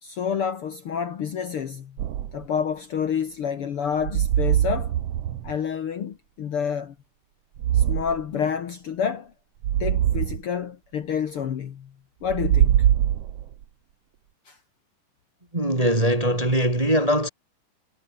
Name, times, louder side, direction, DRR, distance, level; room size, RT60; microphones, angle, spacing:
voice 1, 0.0-2.0 2.3-4.9 5.4-6.9 7.7-9.3 9.8-11.9 12.2-12.9 14.5-14.6, left 7 dB, 55° left, 1.9 m, -28 dB
sound 1, 2.0-2.4 4.0-5.6 7.6-8.2 9.6-10.4 12.2-13.6, right 11 dB, 60° right, 2.0 m, -22 dB
voice 2, 15.5-17.3, equal, 15° right, 1.9 m, -21 dB
omnidirectional pair, 3.6 m